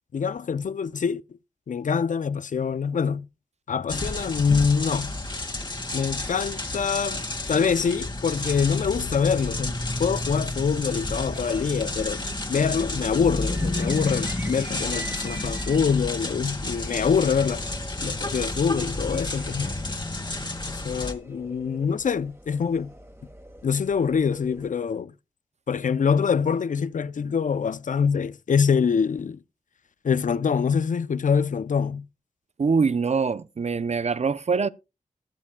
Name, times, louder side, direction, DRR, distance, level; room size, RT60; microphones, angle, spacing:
voice 1, 0.1-1.2 1.7-3.3 3.7-5.1 5.9-12.2 12.5-17.6 18.0-19.8 20.7-22.9 23.6-25.1 25.7-29.4 30.0-32.1, left 6 dB, 75° left, 0.5 m, -25 dB
sound 1, 3.9-21.1, left 2 dB, 35° left, 1.9 m, -31 dB
sound 2, 8.7-16.5 16.7-16.8 17.2-17.3, right 1 dB, 75° right, 2.8 m, -44 dB
sound 3, 11.3-24.7, right 1 dB, 20° right, 2.1 m, -46 dB
voice 2, 32.6-34.7, right 5 dB, 55° right, 0.5 m, -24 dB
20.5 x 7.2 x 2.2 m
cardioid pair, 45°, 13 cm